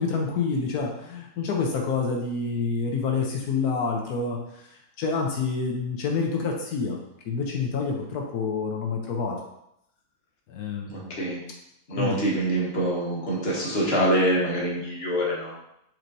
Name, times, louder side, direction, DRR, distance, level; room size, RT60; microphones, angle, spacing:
voice 1, 0.0-4.4 5.0-7.0 7.3-9.4 10.5-11.1 12.0-12.2, left 4 dB, 90° left, 0 dB, 1.3 m, -27 dB
voice 2, 10.9-11.4 11.9-15.6, right 1 dB, 45° left, -4 dB, 1.4 m, -25 dB
4.5 x 4.4 x 2.6 m, 0.79 s
omnidirectional pair, 1.6 m